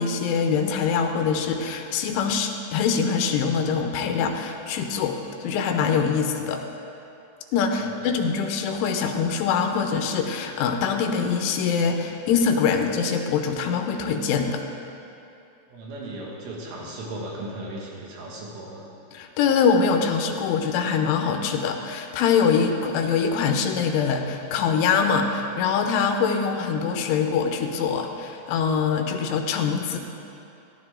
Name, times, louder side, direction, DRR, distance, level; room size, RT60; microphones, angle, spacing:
voice 1, 0.0-6.6 7.5-14.6 19.1-30.0, left 6 dB, 85° left, 5 dB, 3.2 m, -24 dB
voice 2, 7.8-8.2 15.7-18.8, right 1 dB, 85° right, -3 dB, 4.4 m, -36 dB
15.0 x 13.0 x 3.7 m, 2.7 s
omnidirectional pair, 5.6 m